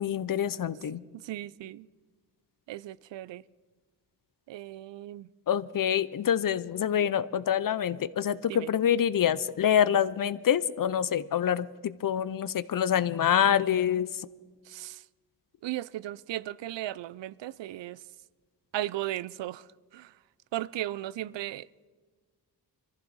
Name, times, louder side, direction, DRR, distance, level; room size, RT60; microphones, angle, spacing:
voice 1, 0.0-1.0 5.5-14.1, left 9 dB, 50° left, 0.6 m, -26 dB
voice 2, 1.1-1.9 2.7-3.4 4.5-5.3 8.5-8.7 14.6-15.0 15.6-18.0 18.7-20.2 20.5-21.7, right 14 dB, 80° right, 0.5 m, -36 dB
23.5 x 14.5 x 4.1 m
wide cardioid pair, 100°, 43 cm